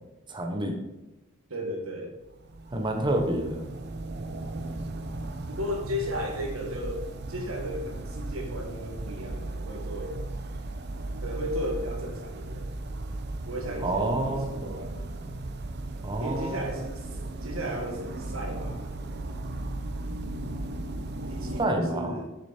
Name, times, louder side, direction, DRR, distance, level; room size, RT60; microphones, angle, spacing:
voice 1, 0.3-0.8 2.7-3.6 13.8-14.6 16.0-16.8 21.6-22.2, right 1 dB, 20° right, 3 dB, 0.8 m, -28 dB
voice 2, 1.5-2.1 5.5-7.0 7.3-10.2 11.2-12.8 13.4-14.9 16.2-17.1 17.4-18.9 21.3-22.3, equal, 80° right, 2 dB, 1.7 m, -35 dB
sound 1, 2.3-21.7, right 2 dB, 50° right, 0.6 m, -36 dB
6.7 x 6.6 x 4.3 m, 1.0 s
head